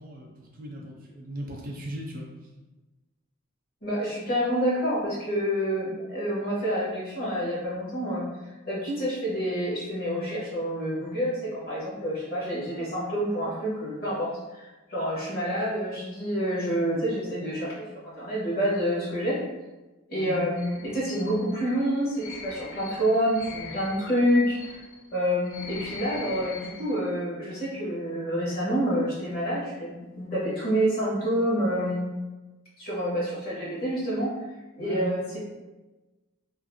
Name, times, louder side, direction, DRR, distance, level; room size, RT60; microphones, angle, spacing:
voice 1, 0.0-2.3 20.1-20.4 34.8-35.1, right 1 dB, 40° right, -1 dB, 0.5 m, -37 dB
voice 2, 3.8-8.3 8.6-19.4 20.1-24.8 25.1-32.0 32.8-34.3 34.7-35.4, equal, 45° left, -8 dB, 1.0 m, -28 dB
sound 1, 20.6-27.0, left 5 dB, 70° left, 0.4 m, -43 dB
2.5 x 2.5 x 2.6 m, 1.1 s
head